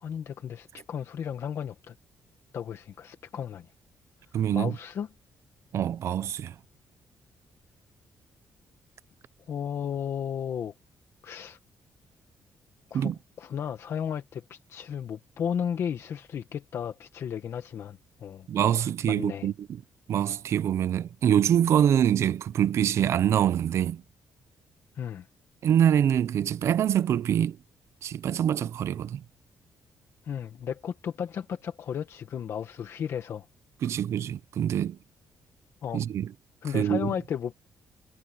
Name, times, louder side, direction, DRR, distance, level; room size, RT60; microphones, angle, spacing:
voice 1, 0.0-1.9 2.5-3.7 4.5-5.1 9.5-10.7 11.2-11.6 12.9-13.1 13.4-18.5 19.1-19.5 24.9-25.3 30.2-33.4 35.8-36.0 36.6-37.5, left 8 dB, 50° left, 1.6 m, -34 dB
voice 2, 4.3-4.7 5.7-6.6 12.9-13.2 18.5-19.8 20.1-24.0 25.6-27.6 28.0-29.2 33.8-35.0 35.9-36.3 36.7-37.1, right 9 dB, 55° right, 0.6 m, -25 dB
cardioid pair, 165°, 6 cm